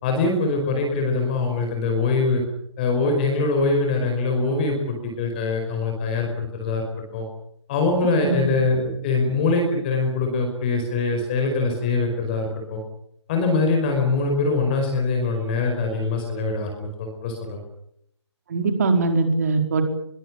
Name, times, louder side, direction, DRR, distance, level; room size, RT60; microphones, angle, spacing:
voice 1, 0.0-2.4 2.8-6.8 7.1-7.2 7.7-12.8 13.3-17.6, left 3 dB, 20° left, 3 dB, 5.1 m, -23 dB
voice 2, 18.5-19.8, right 3 dB, 35° right, 5 dB, 4.8 m, -21 dB
23.0 x 22.5 x 8.8 m, 0.73 s
hypercardioid pair, 170°, 15 cm